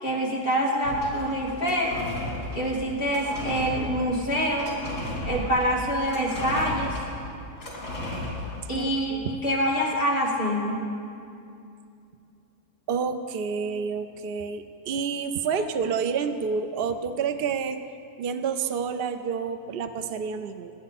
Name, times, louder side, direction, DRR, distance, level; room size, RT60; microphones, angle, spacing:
voice 1, 0.0-2.0 2.5-4.7 5.2-7.0 8.7-9.1 9.4-10.9 15.5-15.7, equal, 35° left, -5 dB, 2.8 m, -26 dB
sound 1, 0.8-8.8, left 1 dB, 75° left, 4.1 m, -35 dB
voice 2, 8.7-9.4 12.9-17.8 18.2-20.7, right 6 dB, 65° right, 9 dB, 0.5 m, -29 dB
27.5 x 10.5 x 4.2 m, 2.5 s
omnidirectional pair, 1.7 m